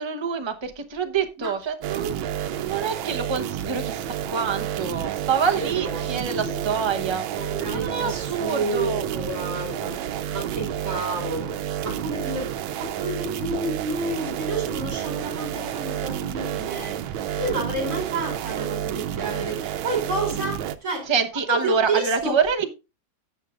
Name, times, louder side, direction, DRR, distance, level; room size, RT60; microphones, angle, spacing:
voice 1, 0.0-2.2 2.5-4.0 4.3-7.2 7.7-9.0 21.1-22.6, right 6 dB, 30° right, 0.5 m, -26 dB
sound 1, 1.8-20.8, right 10 dB, 90° right, 1.5 m, -30 dB
voice 2, 5.5-6.8 7.3-21.1 21.5-22.4, right 2 dB, 50° right, 4.4 m, -30 dB
17.0 x 7.4 x 2.4 m
omnidirectional pair, 2.1 m